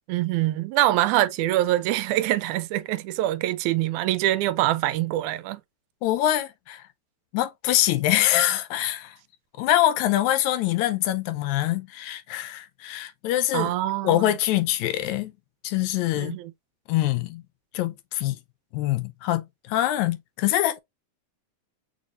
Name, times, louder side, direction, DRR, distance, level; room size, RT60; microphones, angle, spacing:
voice 1, 0.1-5.6 13.5-14.3 16.2-16.5, right 14 dB, 85° right, 1.9 m, -24 dB
voice 2, 6.0-6.8 7.3-9.1 9.6-13.7 14.0-15.3 15.6-16.4 16.9-17.4 17.7-18.4 18.7-20.8, left 13 dB, 80° left, 1.9 m, -24 dB
6.3 x 2.6 x 2.9 m
omnidirectional pair, 3.4 m